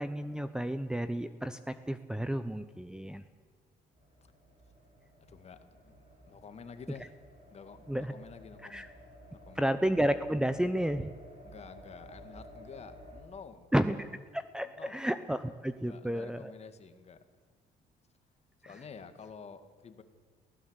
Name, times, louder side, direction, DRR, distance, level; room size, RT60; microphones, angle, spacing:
voice 1, 0.0-3.2 7.9-8.1 8.7-8.9 9.6-11.1 13.7-14.1 14.3-16.5, right 1 dB, 5° right, 8 dB, 0.8 m, -31 dB
sound 1, 4.0-13.2, equal, 45° right, 7.6 m, -53 dB
voice 2, 5.3-5.6 5.8-7.1 7.5-8.9 9.3-9.6 11.4-13.7 14.6-15.0 15.8-17.2 18.6-20.0, left 6 dB, 40° left, 9 dB, 2.0 m, -50 dB
22.5 x 16.5 x 8.2 m, 1.5 s
cardioid pair, 110°, 17 cm